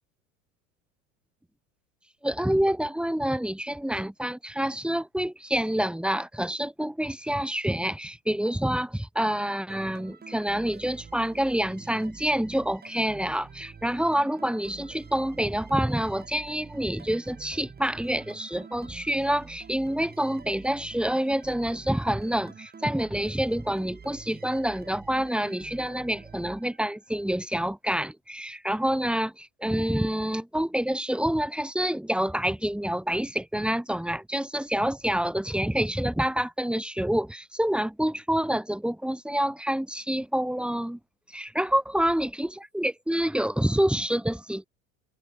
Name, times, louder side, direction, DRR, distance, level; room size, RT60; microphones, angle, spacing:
voice 1, 2.2-41.0 41.3-44.7, right 1 dB, ahead, 4.8 m, -27 dB
sound 1, 9.7-27.2, right 5 dB, 20° right, 6.5 m, -47 dB
hypercardioid pair, 85°, 41 cm